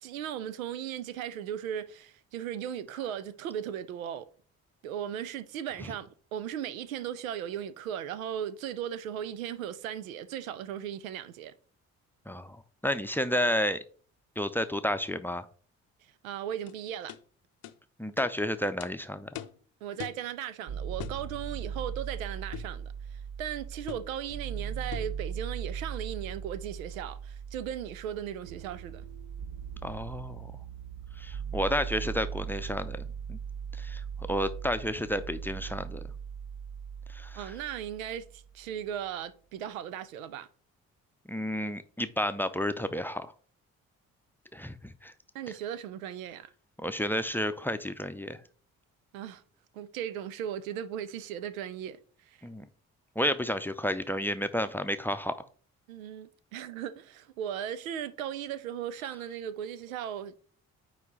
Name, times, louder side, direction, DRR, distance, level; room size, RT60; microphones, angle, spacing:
voice 1, 0.0-4.2 4.8-11.5 16.0-17.1 19.8-29.1 37.4-40.5 45.3-46.5 49.1-49.4 49.7-52.5 55.9-60.4, right 10 dB, 80° right, 0.6 m, -37 dB
voice 2, 12.3-13.8 14.4-15.5 18.0-19.4 29.8-30.5 31.2-33.4 33.8-36.1 37.1-37.5 41.3-43.3 44.5-45.1 46.8-48.4 52.4-52.7 53.2-55.5, equal, 5° left, 0.6 m, -31 dB
sound 1, 16.7-16.8 17.1-17.2 17.6-17.8 18.2-18.3 18.8-18.9 19.4-19.6 20.0-20.2 21.0-21.2 22.5-22.8 23.9-24.1 24.9-25.2, left 12 dB, 60° left, 0.7 m, -41 dB
sound 2, 20.7-38.6, right 7 dB, 45° right, 0.7 m, -39 dB
9.2 x 3.2 x 3.8 m
figure-of-eight pair, 40°, 40 cm